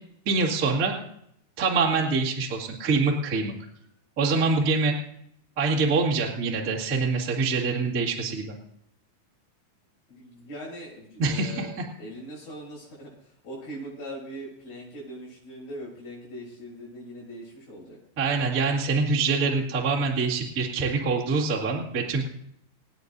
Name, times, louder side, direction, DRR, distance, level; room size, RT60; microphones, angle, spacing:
voice 1, 0.2-1.0 1.6-3.5 4.2-4.9 5.6-8.5 11.2-11.6 18.2-22.2, right 4 dB, 35° right, -3 dB, 1.5 m, -25 dB
voice 2, 10.1-11.7 12.0-18.0, equal, 70° left, -10 dB, 8.9 m, -41 dB
27.5 x 9.6 x 2.7 m, 0.72 s
omnidirectional pair, 5.0 m